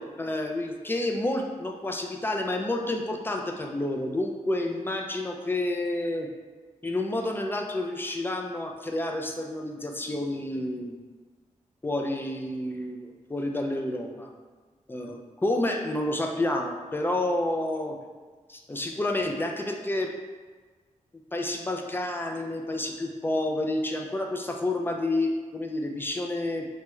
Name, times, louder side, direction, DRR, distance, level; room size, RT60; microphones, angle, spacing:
voice 1, 0.0-6.3 6.8-11.0 11.8-14.3 14.9-18.0 18.5-20.1 21.3-26.7, left 1 dB, 15° left, 2 dB, 0.3 m, -29 dB
3.5 x 2.1 x 3.0 m, 1.4 s
wide cardioid pair, 100°, 13 cm